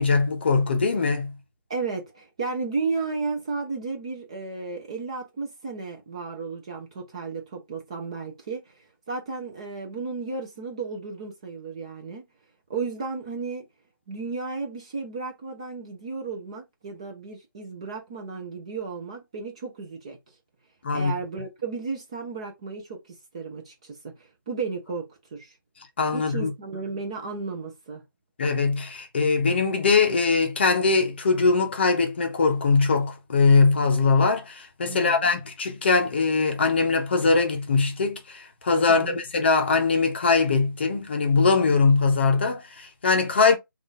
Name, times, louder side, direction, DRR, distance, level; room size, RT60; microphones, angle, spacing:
voice 1, 0.0-1.4 20.8-21.1 26.0-26.5 28.4-43.6, left 4 dB, 30° left, 0.7 m, -21 dB
voice 2, 1.7-12.3 12.7-13.6 14.1-20.2 20.9-25.6 26.1-28.0 34.9-35.3 38.9-39.2, right 4 dB, 15° right, 0.5 m, -33 dB
3.8 x 2.4 x 3.7 m
figure-of-eight pair, 170°, 12 cm